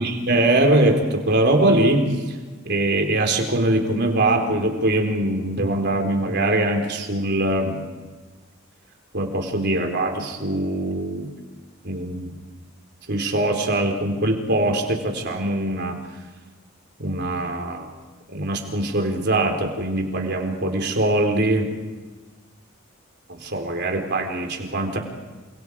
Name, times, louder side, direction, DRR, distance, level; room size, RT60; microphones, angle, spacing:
voice 1, 0.0-2.4 2.6-7.8 9.1-11.3 11.8-12.3 13.1-16.0 17.0-17.9 18.3-21.7 23.3-25.0, right 1 dB, 50° right, 3 dB, 4.1 m, -22 dB
29.0 x 27.5 x 4.9 m, 1.3 s
head